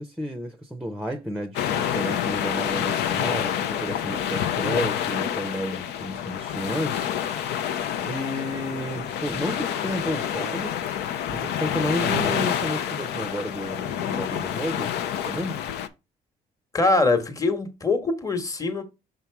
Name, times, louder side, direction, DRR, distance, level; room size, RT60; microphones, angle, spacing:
voice 1, 0.0-7.8 8.0-10.7 11.3-15.6, equal, 5° right, 0.7 m, -32 dB
sound 1, 1.5-15.9, left 9 dB, 80° left, 0.7 m, -28 dB
voice 2, 12.0-12.4 16.7-18.8, left 3 dB, 20° left, 1.2 m, -23 dB
5.7 x 4.0 x 4.6 m
cardioid pair, 110°, 17 cm